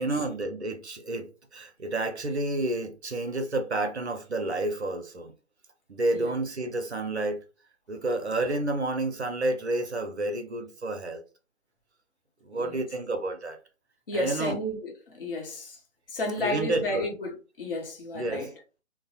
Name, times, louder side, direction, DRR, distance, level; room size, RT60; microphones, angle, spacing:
voice 1, 0.0-5.3 5.9-7.4 7.9-11.2 12.4-13.6 14.1-14.6 16.4-17.1 18.1-18.5, right 2 dB, 55° right, 0.6 m, -30 dB
voice 2, 14.1-15.8 16.1-18.5, left 1 dB, 45° left, 0.8 m, -32 dB
2.9 x 2.1 x 2.8 m
figure-of-eight pair, 145°, 40 cm